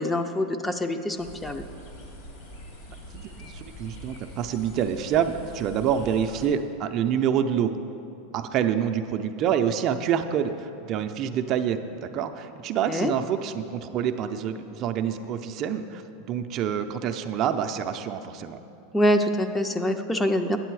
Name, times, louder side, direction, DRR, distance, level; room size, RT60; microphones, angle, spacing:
voice 1, 0.0-1.7 12.9-13.1 18.9-20.6, equal, 10° left, 7 dB, 0.5 m, -25 dB
sound 1, 1.2-6.5, equal, 70° left, 2.4 m, -43 dB
voice 2, 3.1-7.7 8.3-16.0 16.3-18.6, right 8 dB, 45° right, 7 dB, 0.4 m, -27 dB
9.1 x 7.5 x 4.7 m, 2.7 s
hypercardioid pair, 115°, 0 cm